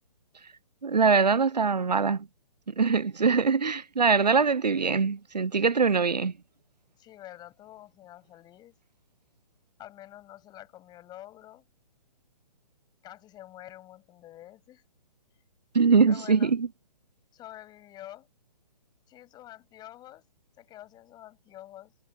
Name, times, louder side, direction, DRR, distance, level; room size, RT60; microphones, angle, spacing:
voice 1, 0.8-2.3 2.7-6.3 15.7-16.7, right 5 dB, 85° right, 0.9 m, -23 dB
voice 2, 7.0-8.7 9.8-11.7 13.0-14.8 16.1-16.5 17.3-18.3 19.1-20.3 20.6-21.9, left 13 dB, 20° left, 7.8 m, -47 dB
figure-of-eight pair, 135°, 21 cm